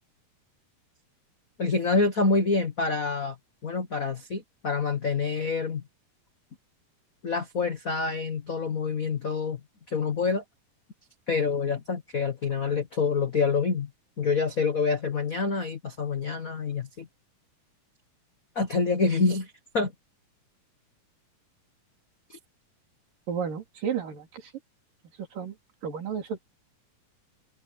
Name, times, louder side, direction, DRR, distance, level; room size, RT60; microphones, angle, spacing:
voice 1, 1.6-3.3 3.6-5.8 7.2-9.6 9.9-10.4 11.3-13.9 14.2-17.1 18.5-19.9 22.3-22.4, left 4 dB, 60° left, 0.9 m, -27 dB
voice 2, 23.3-24.5 25.2-25.6 25.8-26.4, right 7 dB, 85° right, 5.2 m, -32 dB
omnidirectional pair, 3.8 m